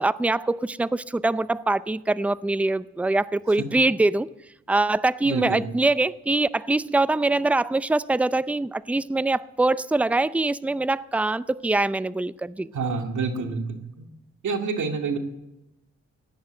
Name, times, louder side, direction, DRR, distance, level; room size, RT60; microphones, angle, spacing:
voice 1, 0.0-4.3 4.7-12.7, right 2 dB, 5° right, 17 dB, 0.5 m, -23 dB
voice 2, 5.2-5.6 12.7-14.0 14.4-15.2, right 4 dB, 80° right, 4 dB, 2.3 m, -28 dB
17.0 x 10.5 x 7.6 m, 0.90 s
cardioid pair, 75°, 29 cm